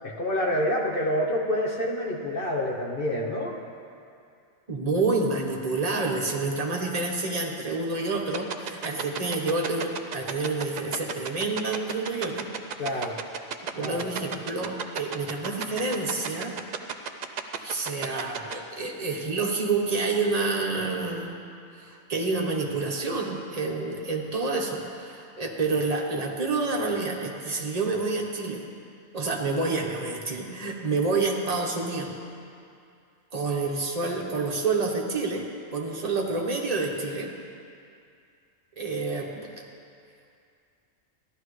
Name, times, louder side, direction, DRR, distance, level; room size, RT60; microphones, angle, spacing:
voice 1, 0.0-3.6 12.8-13.2 13.8-14.3, equal, 45° left, -1 dB, 1.1 m, -28 dB
voice 2, 4.7-12.5 13.7-16.5 17.6-21.4 21.7-28.6 29.1-32.1 33.3-37.3 38.8-39.6, right 3 dB, 30° right, 0 dB, 1.1 m, -28 dB
sound 1, 8.3-18.5, right 7 dB, 60° right, 0.4 m, -31 dB
14.5 x 11.5 x 3.2 m, 2.4 s
omnidirectional pair, 1.3 m